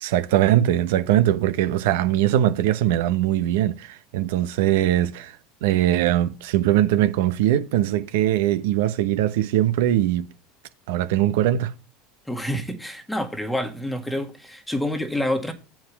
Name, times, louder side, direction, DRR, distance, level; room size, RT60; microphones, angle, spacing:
voice 1, 0.0-5.4 5.6-10.3 10.9-11.7, right 12 dB, 75° right, 0.8 m, -21 dB
voice 2, 12.3-15.5, left 1 dB, 5° left, 1.7 m, -27 dB
7.5 x 4.8 x 7.2 m
supercardioid pair, 110°, 0 cm